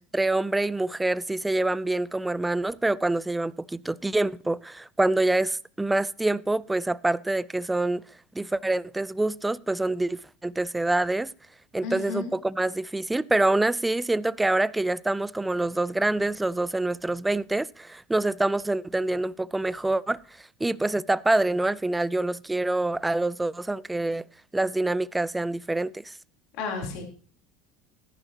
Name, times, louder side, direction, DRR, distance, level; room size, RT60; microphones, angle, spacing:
voice 1, 0.1-8.0 8.3-11.3 11.7-20.2 20.6-24.2 24.5-26.1, right 2 dB, 10° right, 0.4 m, -26 dB
voice 2, 11.8-12.3 26.6-27.0, left 4 dB, 65° left, 3.8 m, -32 dB
14.0 x 10.5 x 3.0 m
supercardioid pair, 105°, 0 cm